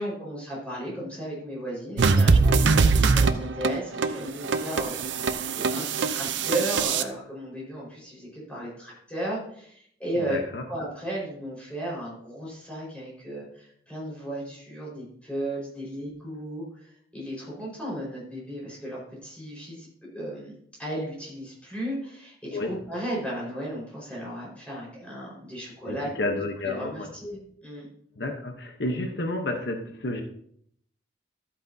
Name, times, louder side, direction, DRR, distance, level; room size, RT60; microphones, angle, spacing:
voice 1, 0.0-10.4 10.7-19.9 20.1-26.1 26.6-27.9, right 1 dB, 5° left, -5 dB, 4.6 m, -35 dB
sound 1, 2.0-7.0, right 4 dB, 90° right, 0.6 m, -22 dB
voice 2, 10.1-10.6 22.5-22.7 25.9-27.1 28.2-30.2, left 2 dB, 70° left, 4 dB, 1.0 m, -31 dB
12.5 x 8.4 x 2.7 m, 0.66 s
head